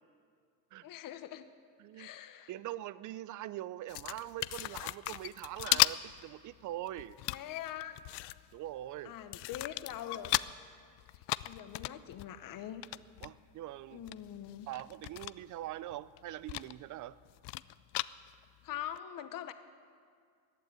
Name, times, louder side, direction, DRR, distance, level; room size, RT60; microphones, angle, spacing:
voice 1, 0.8-1.5 2.0-2.5 7.3-8.0 9.0-10.3 11.1-12.9 13.9-14.7 18.6-19.5, left 11 dB, 45° left, 11 dB, 1.0 m, -43 dB
voice 2, 1.8-2.1 2.5-7.2 8.5-9.1 13.2-14.0 14.7-17.2, right 14 dB, 45° right, 18 dB, 0.5 m, -43 dB
sound 1, 3.9-6.3 6.6-8.7 9.1-10.6 11.0-13.3 13.8-13.9 14.1-15.6 15.9-16.7 17.0-18.4 19.0-19.1, left 20 dB, 65° left, 0.5 m, -35 dB
15.0 x 8.9 x 9.5 m, 2.1 s
supercardioid pair, 105°, 45 cm